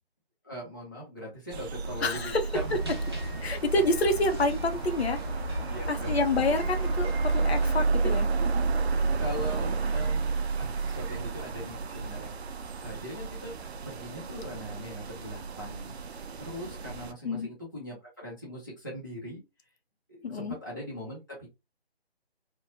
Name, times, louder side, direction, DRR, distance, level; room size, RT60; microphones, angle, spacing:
voice 1, 0.4-3.0 5.5-6.1 6.4-6.5 7.6-7.7 8.0-8.1 8.9-12.3 12.8-13.5 13.8-19.4 20.1-21.5, equal, 20° left, 0.6 m, -41 dB
sound 1, 1.5-17.1, right 4 dB, 85° right, 0.5 m, -31 dB
voice 2, 2.0-2.4 3.4-5.2 5.9-8.3 17.2-17.5 20.2-20.6, left 2 dB, 80° left, 0.8 m, -28 dB
sound 2, 2.5-7.7, equal, 25° right, 0.6 m, -37 dB
3.0 x 2.2 x 2.7 m
hypercardioid pair, 175°, 31 cm